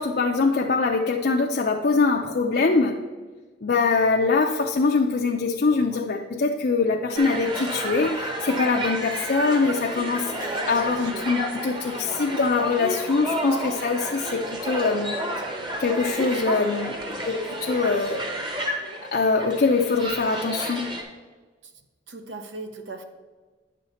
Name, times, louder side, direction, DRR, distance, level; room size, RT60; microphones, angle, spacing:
voice 1, 0.0-3.0 3.6-15.2 15.8-17.0 17.2-18.2 19.1-20.9, left 4 dB, 55° left, 1 dB, 0.5 m, -23 dB
sound 1, 7.2-21.0, right 1 dB, 25° right, 1.1 m, -31 dB
voice 2, 10.9-11.3 22.1-23.0, right 3 dB, 75° right, 6 dB, 0.9 m, -38 dB
9.1 x 6.4 x 4.2 m, 1.4 s
head